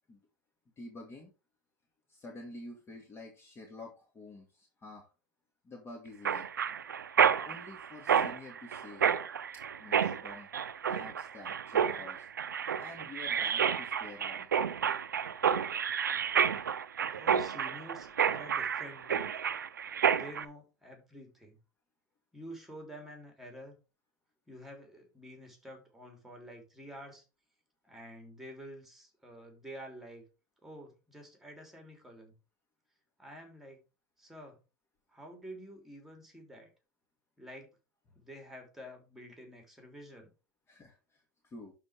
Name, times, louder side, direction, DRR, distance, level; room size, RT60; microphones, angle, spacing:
voice 1, 0.8-1.3 2.1-5.1 5.6-6.5 7.4-9.0 9.8-10.5 10.9-12.3 12.8-14.5 40.7-41.7, left 2 dB, 25° left, 1 dB, 2.2 m, -49 dB
Mechanisms, 6.3-20.5, right 7 dB, 90° right, 0.6 m, -30 dB
voice 2, 17.1-19.4 20.1-21.6 22.3-23.7 24.5-27.2 27.8-30.3 30.6-32.3 33.2-33.8 34.2-34.6 35.1-36.7 37.4-37.8 38.1-40.3, equal, 5° right, 3 dB, 3.4 m, -49 dB
12.0 x 4.4 x 3.5 m, 0.31 s
hypercardioid pair, 95°, 10 cm